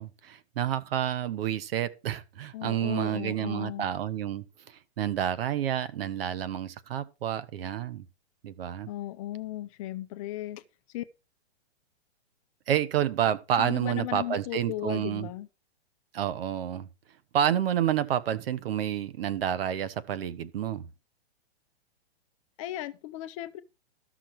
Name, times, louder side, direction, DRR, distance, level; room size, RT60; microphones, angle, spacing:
voice 1, 0.0-4.4 5.0-8.0 8.4-8.9 12.7-15.3 16.1-16.9 17.3-20.9, right 10 dB, 60° right, 1.2 m, -29 dB
voice 2, 2.5-3.9 8.9-10.6 10.9-11.0 13.6-15.5 22.6-23.6, left 14 dB, 30° left, 0.6 m, -36 dB
13.5 x 6.2 x 4.7 m
hypercardioid pair, 145°, 33 cm